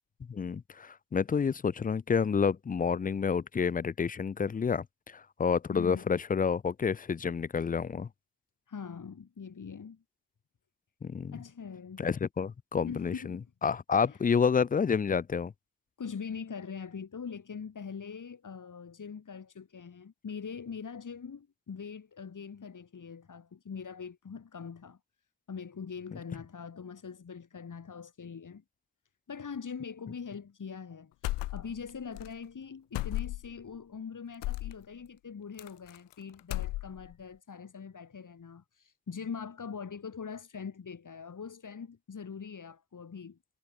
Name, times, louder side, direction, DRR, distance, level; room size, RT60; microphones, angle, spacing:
voice 1, 0.3-8.1 11.0-11.4 12.0-15.5 26.1-26.2, left 6 dB, 20° left, 0.4 m, -29 dB
voice 2, 5.7-6.0 8.7-10.0 11.3-12.0 12.8-13.5 14.0-14.2 16.0-25.0 25.5-28.6 29.3-43.4, left 6 dB, 50° left, 7.0 m, -42 dB
sound 1, 31.2-32.3 32.9-33.6 34.4-34.8 35.6-36.1 36.4-37.1, left 18 dB, 85° left, 0.9 m, -34 dB
supercardioid pair, 65°, 41 cm